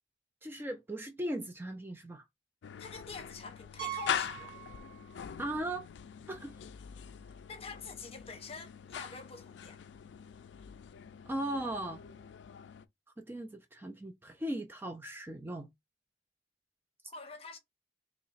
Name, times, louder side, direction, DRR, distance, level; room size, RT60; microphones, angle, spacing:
voice 1, 0.4-2.2 5.4-5.9 6.3-6.6 11.3-12.0 13.2-15.7, right 1 dB, 10° right, 0.4 m, -38 dB
sound 1, 2.6-12.8, left 8 dB, 70° left, 0.3 m, -43 dB
voice 2, 2.8-4.6 7.5-9.8 17.1-17.6, left 4 dB, 35° left, 0.8 m, -46 dB
Piano, 3.8-5.4 5.7-5.8 6.4-6.5 6.7-6.8 8.9-9.0, right 14 dB, 60° right, 0.9 m, -43 dB
3.1 x 2.8 x 4.1 m
head